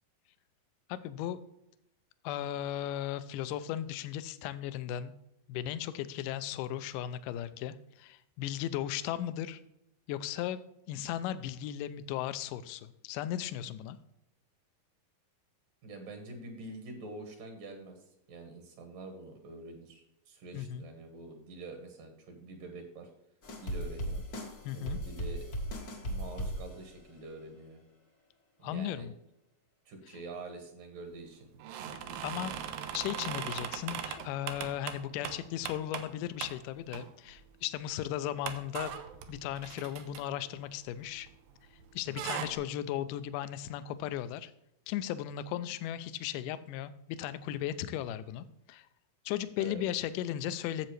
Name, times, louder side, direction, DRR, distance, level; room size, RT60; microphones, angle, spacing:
voice 1, 0.9-1.4 2.2-5.1 5.5-9.6 10.1-10.6 10.9-14.0 20.5-20.9 24.6-25.0 28.6-29.1 32.2-32.6 32.9-39.0 39.3-41.3 41.9-44.5 44.9-48.9 49.3-50.9, left 11 dB, 80° left, 13 dB, 2.0 m, -36 dB
voice 2, 15.8-18.0 18.3-23.1 23.6-24.2 24.7-25.4 26.0-27.8 28.6-29.1 29.9-31.5 32.0-32.4 42.2-42.3 49.6-49.8, right 2 dB, 70° right, 4 dB, 2.9 m, -46 dB
sound 1, 23.4-27.1, right 1 dB, 65° left, 0.9 m, -37 dB
sound 2, 31.6-36.1 36.4-36.6 36.9-37.4 37.8-37.9 38.4-41.5 41.8-42.6, right 9 dB, 85° right, 2.5 m, -40 dB
10.5 x 7.5 x 3.2 m, 0.82 s
omnidirectional pair, 4.2 m